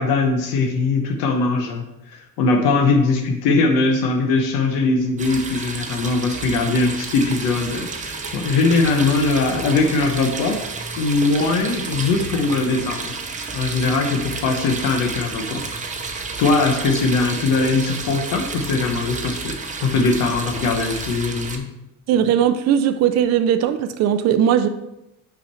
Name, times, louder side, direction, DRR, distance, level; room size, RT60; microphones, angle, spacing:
voice 1, 0.0-10.6 11.0-13.1 13.5-15.6 16.4-19.6 19.8-21.7, left 3 dB, 90° left, 3 dB, 1.0 m, -20 dB
sound 1, 5.2-21.6, right 4 dB, 25° right, 0.7 m, -31 dB
voice 2, 22.1-24.7, right 9 dB, 55° right, 9 dB, 0.5 m, -18 dB
5.7 x 5.1 x 4.3 m, 0.89 s
cardioid pair, 130°, 32 cm